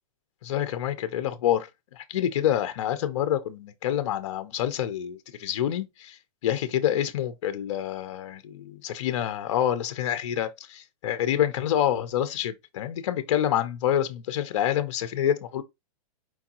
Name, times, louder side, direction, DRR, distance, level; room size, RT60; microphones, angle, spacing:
voice 1, 0.4-15.6, left 10 dB, 55° left, 0.7 m, -27 dB
4.6 x 3.5 x 2.9 m
supercardioid pair, 165°, 18 cm